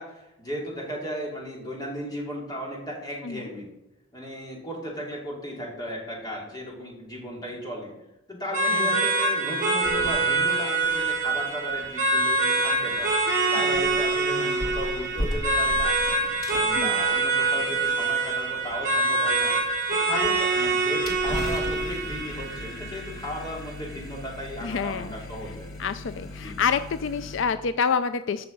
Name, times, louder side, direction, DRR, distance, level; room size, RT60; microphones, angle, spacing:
voice 1, 0.0-3.7 4.1-7.9 8.3-13.2 13.5-15.9 16.6-19.5 19.9-25.7 26.4-26.6, equal, 20° left, -2 dB, 2.9 m, -35 dB
sound 1, 8.5-23.5, right 3 dB, 40° right, 3.1 m, -25 dB
sound 2, 9.8-10.6 10.8-27.4, left 1 dB, 85° left, 2.2 m, -38 dB
voice 2, 24.6-25.2 25.8-28.5, left 6 dB, 65° left, 12 dB, 0.4 m, -27 dB
14.5 x 5.8 x 5.3 m, 0.94 s
head